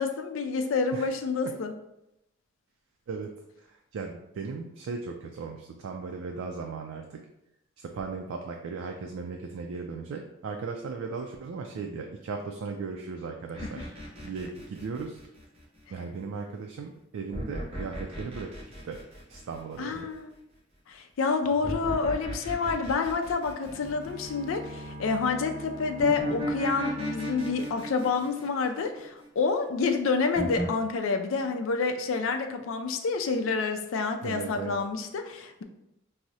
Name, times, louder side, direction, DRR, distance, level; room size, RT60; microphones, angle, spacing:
voice 1, 0.0-1.7 13.6-13.8 19.8-20.4 20.9-35.6, left 4 dB, 80° left, 6 dB, 0.4 m, -28 dB
voice 2, 3.6-7.2 7.8-13.9 14.2-15.2 15.9-18.5 18.8-19.0 19.3-20.1 34.2-34.7, right 4 dB, 90° right, 2 dB, 0.3 m, -37 dB
sound 1, 13.6-15.8 17.3-20.0 21.6-24.5 26.0-29.4 30.3-30.7, equal, 30° right, 0.8 m, -35 dB
sound 2, 23.6-28.6, left 1 dB, 50° right, 1.1 m, -43 dB
4.6 x 2.0 x 2.7 m, 0.86 s
head